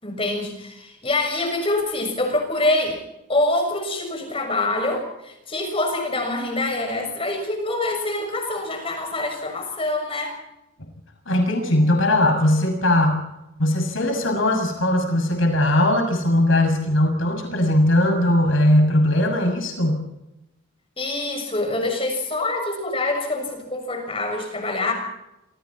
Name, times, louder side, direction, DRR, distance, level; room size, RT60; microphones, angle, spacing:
voice 1, 0.0-3.0 3.3-10.3 21.0-24.9, left 2 dB, 25° left, 4 dB, 6.6 m, -25 dB
voice 2, 11.2-13.2 13.6-20.0, left 1 dB, 70° left, 4 dB, 6.8 m, -19 dB
27.5 x 27.0 x 4.3 m, 0.91 s
head